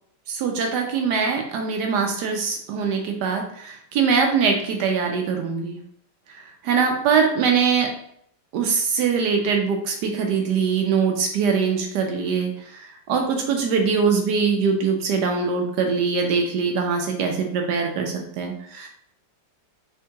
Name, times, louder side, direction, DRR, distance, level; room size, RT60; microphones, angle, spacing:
voice 1, 0.3-5.8 6.3-7.9 8.5-18.9, right 5 dB, 75° right, 2 dB, 1.1 m, -22 dB
4.4 x 3.3 x 2.8 m, 0.68 s
omnidirectional pair, 1.9 m